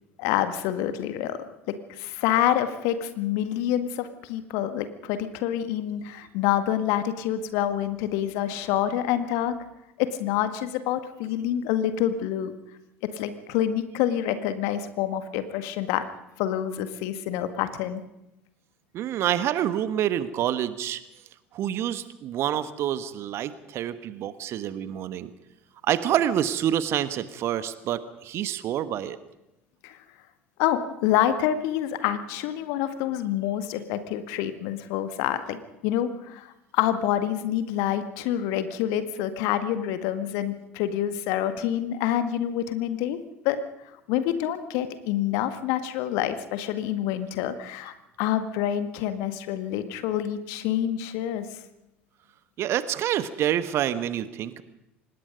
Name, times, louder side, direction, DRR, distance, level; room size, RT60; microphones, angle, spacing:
voice 1, 0.2-1.4 1.7-9.5 10.0-12.5 13.0-16.0 16.4-18.0 29.8-30.0 30.6-43.2 43.4-43.7 44.1-51.6, left 11 dB, 55° left, 10 dB, 1.8 m, -27 dB
voice 2, 18.9-21.0 21.5-25.3 25.8-29.2 52.6-54.6, right 11 dB, 45° right, 13 dB, 1.4 m, -27 dB
25.0 x 20.0 x 5.3 m, 0.90 s
figure-of-eight pair, 65°, 6 cm